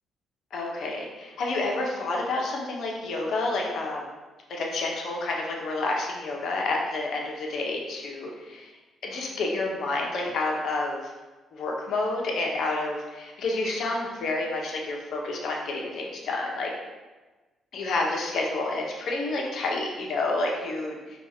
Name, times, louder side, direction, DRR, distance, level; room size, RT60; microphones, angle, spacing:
voice 1, 0.5-4.1 4.5-8.7 9.0-11.1 11.5-16.7 17.7-21.0, left 2 dB, 70° left, -1 dB, 0.8 m, -29 dB
4.5 x 2.4 x 4.3 m, 1.2 s
cardioid pair, 90°, 0 cm